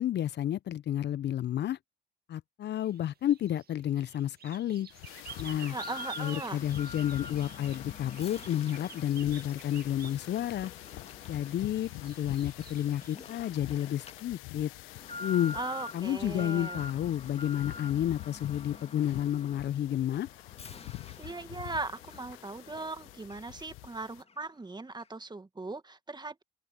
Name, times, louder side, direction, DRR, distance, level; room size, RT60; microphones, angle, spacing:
voice 1, 0.0-1.8 2.3-4.9 5.4-5.8 6.2-10.7 11.3-14.7 15.2-15.6 15.9-20.3, left 11 dB, 55° left, 1.1 m, -31 dB
sound 1, 2.8-13.3, right 8 dB, 45° right, 2.2 m, -50 dB
sound 2, 4.9-24.2, left 22 dB, 70° left, 1.7 m, -46 dB
Alarm, 5.3-23.9 24.3-24.4 25.0-25.1, left 3 dB, 30° left, 2.3 m, -47 dB
voice 2, 5.7-6.6 15.5-16.8 21.2-26.4, right 3 dB, 20° right, 2.2 m, -39 dB
hypercardioid pair, 50°, 21 cm